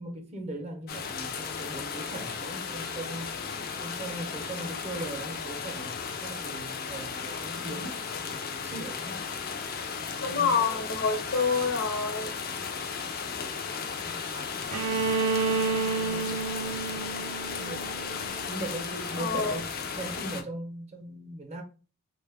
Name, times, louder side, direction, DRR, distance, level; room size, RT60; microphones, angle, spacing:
voice 1, 0.0-3.4 3.8-9.3 10.0-11.2 13.9-17.9 18.5-21.6, right 2 dB, 30° right, 0.6 m, -40 dB
sound 1, 0.9-20.4, left 5 dB, 40° left, 0.4 m, -35 dB
voice 2, 10.2-12.3 19.2-19.6, left 5 dB, 60° left, 0.8 m, -27 dB
Bowed string instrument, 14.7-18.6, right 4 dB, 80° right, 0.4 m, -30 dB
4.1 x 2.2 x 3.3 m
head